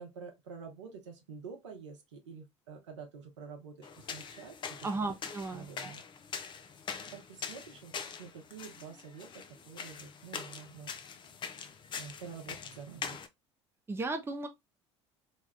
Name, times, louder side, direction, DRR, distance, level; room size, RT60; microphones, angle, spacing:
voice 1, 0.0-5.2 5.5-6.0 7.1-10.9 11.9-13.2, right 6 dB, 75° right, 0.8 m, -48 dB
sound 1, 3.8-13.3, left 6 dB, 30° left, 0.5 m, -43 dB
voice 2, 4.8-5.9 13.9-14.5, right 3 dB, 15° right, 0.7 m, -35 dB
2.8 x 2.3 x 3.3 m
figure-of-eight pair, 65°, 15 cm